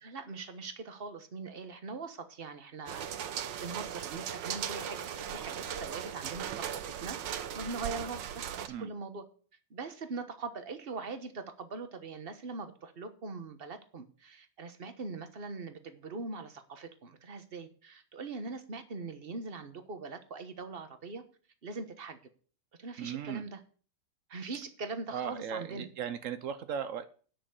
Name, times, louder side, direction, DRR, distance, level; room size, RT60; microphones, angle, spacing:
voice 1, 0.0-3.1 3.6-9.2 9.7-21.2 21.6-22.2 22.8-23.6 24.3-25.9, right 4 dB, 35° right, 9 dB, 1.1 m, -42 dB
sound 1, 2.9-8.7, right 9 dB, 65° right, 1.4 m, -38 dB
voice 2, 23.0-23.5 25.1-27.1, right 8 dB, 85° right, 11 dB, 0.6 m, -37 dB
10.0 x 6.5 x 8.0 m, 0.42 s
omnidirectional pair, 2.3 m